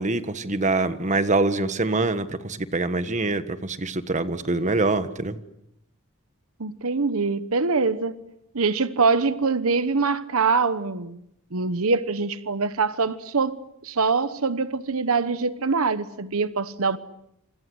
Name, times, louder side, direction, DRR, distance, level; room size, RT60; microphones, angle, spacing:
voice 1, 0.0-5.4, right 2 dB, 35° right, 11 dB, 1.4 m, -24 dB
voice 2, 6.6-8.1 8.5-11.2 11.5-13.5 13.8-17.0, right 4 dB, 75° right, 13 dB, 1.1 m, -24 dB
27.5 x 25.5 x 7.9 m, 0.78 s
head